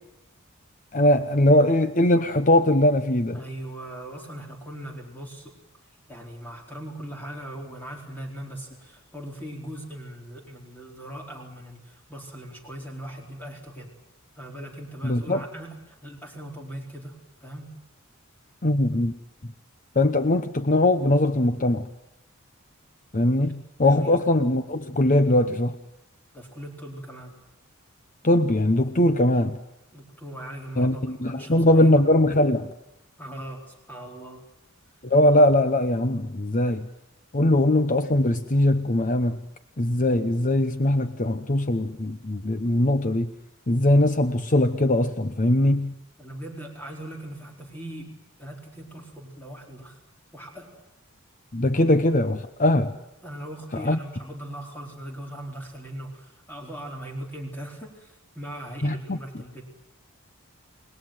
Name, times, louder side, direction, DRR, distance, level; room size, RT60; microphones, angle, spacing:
voice 1, 0.9-3.4 15.0-15.4 18.6-19.1 20.0-21.9 23.1-25.7 28.2-29.6 30.8-32.7 35.0-36.9 37.3-39.4 39.8-43.3 43.7-45.9 51.5-53.0 53.7-54.0 58.8-59.2, left 1 dB, 40° left, 9 dB, 1.0 m, -21 dB
voice 2, 3.3-5.5 6.1-13.9 14.4-17.7 23.4-23.5 23.8-24.2 26.3-27.4 29.9-32.0 33.2-34.4 46.2-50.0 50.3-50.7 53.2-59.8, right 1 dB, 10° left, 0 dB, 4.3 m, -39 dB
29.5 x 20.0 x 7.8 m, 0.85 s
head